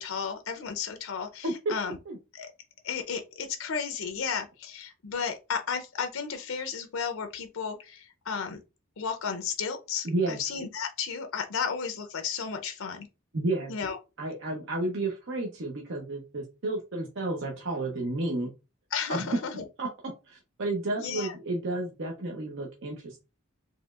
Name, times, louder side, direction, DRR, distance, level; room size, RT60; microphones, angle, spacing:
voice 1, 0.0-2.0 2.3-2.5 2.8-8.6 9.0-13.1 13.7-14.0 18.9-19.6 21.0-21.3, left 6 dB, 80° left, 0.6 m, -33 dB
voice 2, 10.0-10.4 13.3-13.7 14.2-18.5 19.1-19.3 19.8-19.9 20.3-23.2, right 2 dB, 65° right, 0.7 m, -31 dB
4.3 x 3.0 x 2.4 m
head